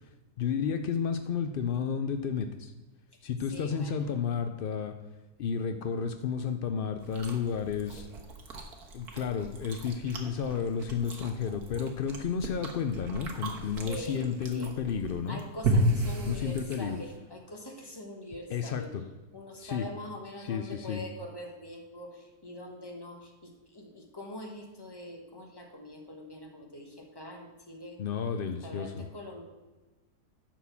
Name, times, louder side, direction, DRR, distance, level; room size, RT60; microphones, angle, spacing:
voice 1, 0.4-2.7 3.2-4.9 5.4-8.1 8.9-15.4 16.3-17.0 18.5-19.0 19.6-19.9 20.4-21.0 28.0-29.1, left 6 dB, 75° left, 8 dB, 0.5 m, -32 dB
voice 2, 3.5-4.1 13.8-14.2 14.5-14.7 15.3-18.9 19.3-28.0 28.6-29.4, left 1 dB, 15° left, 1 dB, 1.4 m, -43 dB
Chewing mastication, 7.0-17.2, right 1 dB, 85° right, 1.8 m, -34 dB
11.0 x 4.6 x 7.0 m, 1.2 s
omnidirectional pair, 1.6 m